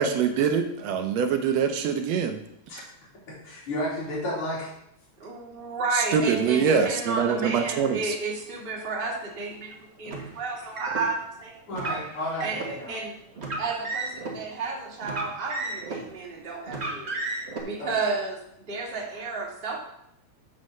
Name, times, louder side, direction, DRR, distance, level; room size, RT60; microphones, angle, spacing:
voice 1, 0.0-2.4 5.9-8.1, right 6 dB, 75° right, 7 dB, 1.7 m, -24 dB
voice 2, 3.4-4.7 11.7-13.0 17.8-17.9, equal, 50° left, -7 dB, 3.8 m, -32 dB
voice 3, 5.2-11.6 11.8-12.1 12.4-13.1 13.6-17.2 17.6-18.4 18.7-19.8, right 3 dB, 25° right, -2 dB, 1.4 m, -32 dB
Car, 10.1-11.0 11.7-12.7 13.4-14.3 15.0-16.1 16.7-17.6, right 3 dB, 50° right, 0.7 m, -33 dB
8.3 x 4.2 x 6.4 m, 0.77 s
omnidirectional pair, 3.3 m